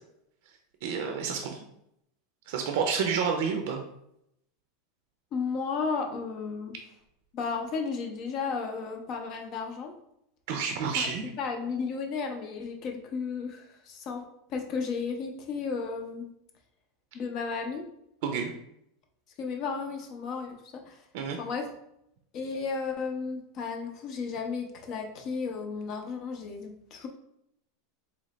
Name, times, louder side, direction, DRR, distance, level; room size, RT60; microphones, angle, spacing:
voice 1, 0.8-1.6 2.5-3.8 10.5-11.3 18.2-18.5 21.1-21.4, right 6 dB, 60° right, 3 dB, 0.5 m, -29 dB
voice 2, 5.3-6.7 7.3-9.9 11.0-11.1 11.4-16.3 17.1-17.8 19.4-21.0 21.4-21.7 22.3-27.1, left 5 dB, 40° left, 3 dB, 0.6 m, -34 dB
3.9 x 2.9 x 3.1 m, 0.77 s
supercardioid pair, 155°, 0 cm